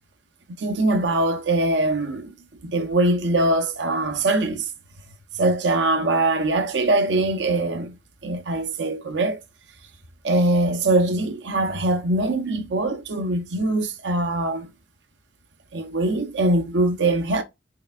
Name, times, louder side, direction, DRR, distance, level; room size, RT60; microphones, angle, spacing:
voice 1, 0.5-2.3 2.6-4.7 5.3-8.0 8.2-9.4 10.2-14.7 15.7-17.4, right 2 dB, 75° right, 0.8 m, -22 dB
4.7 x 3.3 x 2.4 m
head